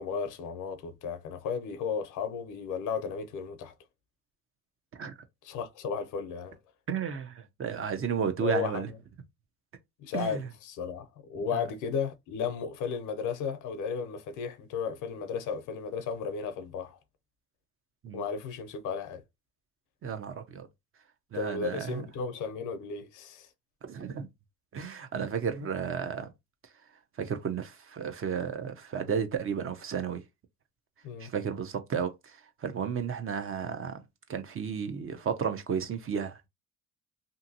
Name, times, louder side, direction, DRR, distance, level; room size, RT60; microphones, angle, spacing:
voice 1, 0.0-3.7 5.4-6.6 8.4-9.0 10.0-17.0 18.1-19.2 21.3-23.5 31.0-31.3, left 6 dB, 90° left, 0.6 m, -34 dB
voice 2, 6.9-8.9 10.1-10.5 11.5-11.6 18.0-18.2 20.0-20.7 21.3-22.1 23.8-24.3 24.7-26.3 27.2-30.2 31.2-32.4 32.6-34.0 34.3-36.5, right 7 dB, 45° right, 0.7 m, -33 dB
2.7 x 2.6 x 2.7 m
cardioid pair, 90°, 30 cm